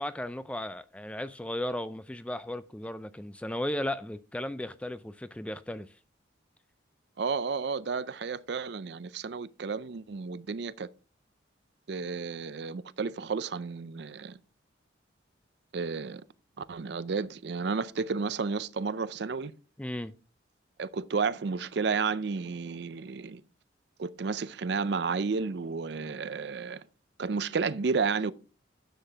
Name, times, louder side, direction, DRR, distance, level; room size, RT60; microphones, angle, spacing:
voice 1, 0.0-5.9 19.8-20.1, left 1 dB, 5° left, 0.3 m, -35 dB
voice 2, 7.2-10.9 11.9-14.4 15.7-16.2 16.7-19.5 20.8-23.4 24.0-26.8 27.2-28.3, right 5 dB, 60° right, 0.5 m, -32 dB
10.0 x 7.4 x 3.4 m
head